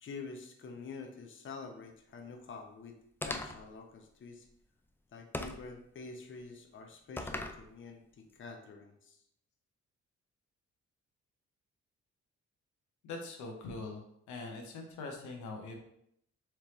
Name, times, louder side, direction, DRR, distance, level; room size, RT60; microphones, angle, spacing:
voice 1, 0.0-4.5 5.1-9.2, left 4 dB, 45° left, 3 dB, 0.7 m, -47 dB
sound 1, 3.2-3.7 5.3-5.7 7.2-7.6, left 1 dB, 10° left, 0.4 m, -38 dB
voice 2, 13.0-14.0 14.3-15.8, left 3 dB, 90° left, 2 dB, 0.8 m, -42 dB
4.4 x 3.3 x 3.0 m, 0.73 s
cardioid pair, 90°, 29 cm